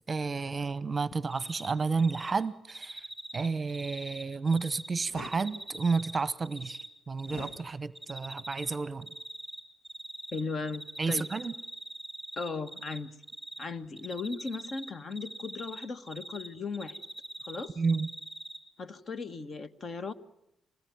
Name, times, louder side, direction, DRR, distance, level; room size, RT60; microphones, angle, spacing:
voice 1, 0.1-3.0 3.3-6.8 7.1-9.1 11.0-11.5 17.8-18.1, right 4 dB, 30° right, 16 dB, 0.9 m, -31 dB
Cricket, 1.3-1.7 2.0-2.3 2.7-4.9 5.2-6.9 7.2-7.6 8.0-8.8 9.0-10.4 10.7-13.0 13.2-13.6 14.0-16.5 16.7-18.6, right 1 dB, 5° right, 7.9 m, -42 dB
sound 1, 5.0-5.4 7.2-7.6, left 4 dB, 90° left, 2.2 m, -45 dB
voice 2, 10.3-11.3 12.4-13.1 13.6-17.0 17.4-17.8 18.8-20.1, left 4 dB, 45° left, 12 dB, 1.4 m, -37 dB
25.0 x 19.5 x 9.4 m, 0.84 s
cardioid pair, 90°, 0 cm